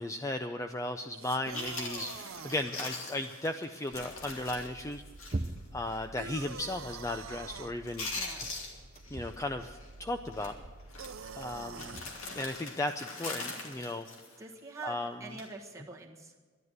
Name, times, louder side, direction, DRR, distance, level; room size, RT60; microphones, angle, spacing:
voice 1, 0.0-5.0 5.3-5.4 5.7-8.1 9.1-10.5 11.3-12.1 12.3-14.1 14.8-15.3, left 1 dB, 15° left, 7 dB, 0.4 m, -36 dB
sound 1, 1.1-2.7 6.2-7.7 11.0-12.0, right 6 dB, 85° right, 0.6 m, -45 dB
Chewing mastication, 1.2-1.3 1.5-5.6 5.9-6.0 6.5-6.8 7.1-7.5 7.8-9.3 9.6-9.9 10.3-10.5 10.9-14.8 15.2-15.5, left 3 dB, 80° left, 2.6 m, -42 dB
sound 2, 3.9-12.6, right 2 dB, 35° right, 0.6 m, -45 dB
voice 2, 8.2-8.5 14.4-16.3, right 4 dB, 15° right, -2 dB, 1.5 m, -45 dB
12.5 x 11.0 x 7.9 m, 1.5 s
head